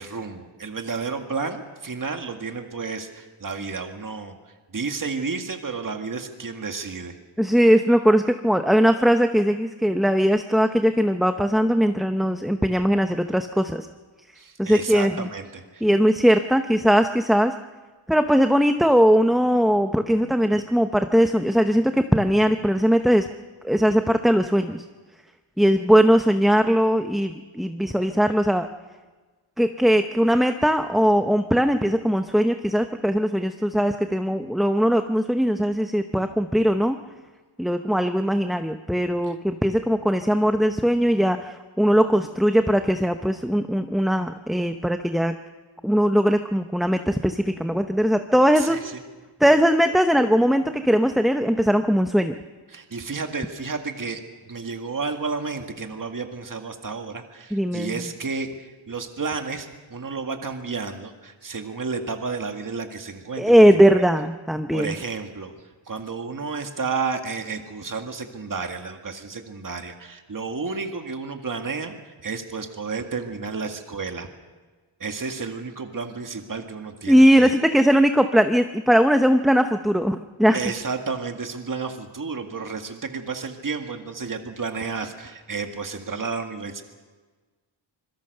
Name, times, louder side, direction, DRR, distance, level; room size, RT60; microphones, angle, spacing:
voice 1, 0.0-7.2 14.4-15.9 39.3-39.4 48.5-49.0 52.7-64.1 64.7-74.3 75.0-77.5 80.5-86.8, right 4 dB, 40° right, 5 dB, 2.0 m, -32 dB
voice 2, 7.4-13.9 14.6-15.3 15.8-17.5 18.1-23.3 23.6-24.8 25.6-28.7 29.6-37.0 37.6-45.3 45.8-48.8 49.4-52.3 57.5-58.0 63.4-64.9 77.1-80.6, equal, ahead, 7 dB, 0.7 m, -20 dB
26.5 x 22.0 x 6.7 m, 1.3 s
wide cardioid pair, 130°, 50 cm